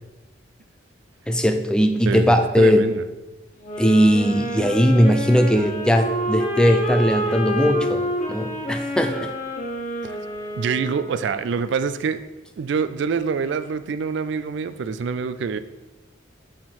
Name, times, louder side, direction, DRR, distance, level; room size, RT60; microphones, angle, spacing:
voice 1, 1.3-2.9 3.8-9.3, equal, 5° left, 0.4 m, -19 dB
voice 2, 2.1-3.0 10.6-12.2 12.6-15.6, right 5 dB, 65° right, 0.3 m, -25 dB
sound 1, 3.6-11.4, right 1 dB, 40° left, 1.2 m, -28 dB
8.7 x 3.7 x 4.4 m
head